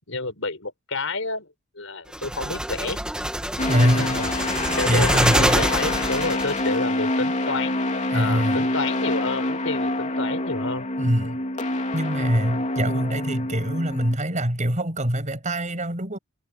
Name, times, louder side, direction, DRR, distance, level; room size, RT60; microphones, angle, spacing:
voice 1, 0.1-1.5 1.8-3.0 3.8-7.8 8.1-10.9, left 3 dB, 75° left, 5.9 m, -30 dB
sound 1, 2.1-6.7, right 1 dB, 5° right, 1.7 m, -25 dB
sound 2, 3.6-14.2, left 2 dB, 35° left, 3.3 m, -26 dB
voice 2, 3.7-4.2 4.9-5.6 8.1-8.7 11.0-11.4 11.9-16.2, equal, 35° right, 6.3 m, -24 dB
head